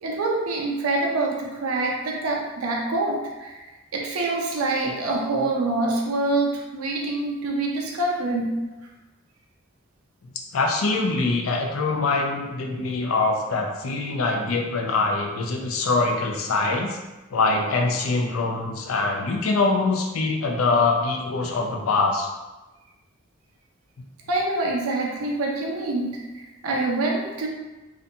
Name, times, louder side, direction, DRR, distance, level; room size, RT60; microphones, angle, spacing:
voice 1, 0.0-3.6 3.9-8.5 24.3-26.2 26.6-27.5, right 2 dB, 85° right, -1 dB, 0.5 m, -25 dB
voice 2, 10.5-17.0 17.3-22.3, left 3 dB, 75° left, 1 dB, 0.4 m, -23 dB
2.5 x 2.2 x 2.6 m, 1.1 s
head